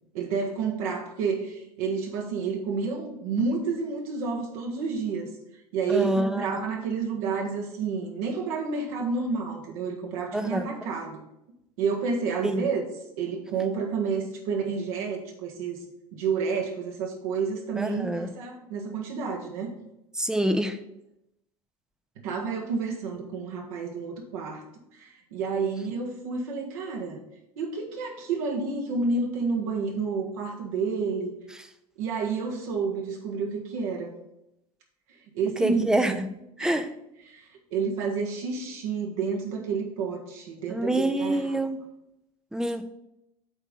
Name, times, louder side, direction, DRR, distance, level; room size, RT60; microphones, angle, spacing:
voice 1, 0.1-5.3 5.7-11.2 11.8-12.8 13.2-15.8 16.1-19.7 20.4-20.6 22.2-24.6 25.0-27.2 27.6-31.3 32.0-34.2 35.3-35.9 36.6-36.9 37.3-37.4 37.7-41.6, right 5 dB, 70° right, 0 dB, 1.6 m, -30 dB
voice 2, 5.9-6.5 10.3-10.9 12.4-12.7 17.8-18.3 20.1-20.8 35.6-36.3 36.6-36.9 40.7-41.8 42.5-42.8, right 1 dB, 5° right, 9 dB, 0.6 m, -26 dB
8.1 x 3.6 x 5.4 m, 0.86 s
hypercardioid pair, 80°, 19 cm